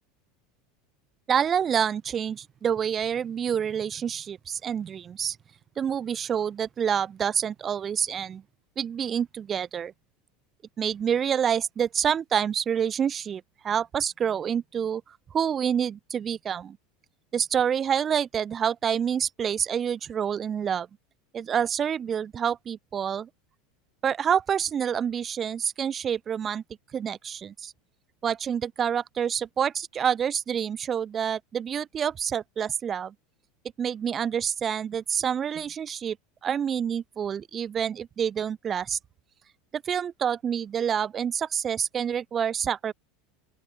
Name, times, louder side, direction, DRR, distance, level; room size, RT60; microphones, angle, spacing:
voice 1, 1.3-5.4 5.8-8.4 8.8-9.9 10.8-16.8 17.3-20.9 21.3-23.3 24.0-26.6 26.9-27.7 28.2-33.1 33.8-36.2 36.4-39.0 39.7-42.9, right 8 dB, 30° right, 0.4 m, -27 dB
open air
supercardioid pair, 120°, 0 cm